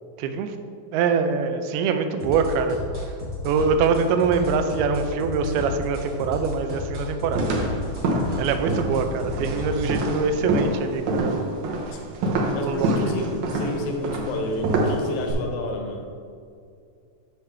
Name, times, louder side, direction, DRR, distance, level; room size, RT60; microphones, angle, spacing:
voice 1, 0.2-0.6 0.9-2.8 3.4-7.4 8.4-11.5 12.6-13.2, right 5 dB, 90° right, 7 dB, 2.5 m, -24 dB
sound 1, 2.2-10.1, left 2 dB, 20° right, 1.1 m, -33 dB
sound 2, 7.3-15.3, right 2 dB, 70° right, 1.9 m, -26 dB
voice 2, 12.5-16.1, left 1 dB, 70° left, 3 dB, 2.4 m, -30 dB
9.6 x 6.5 x 3.3 m, 2.4 s
omnidirectional pair, 4.4 m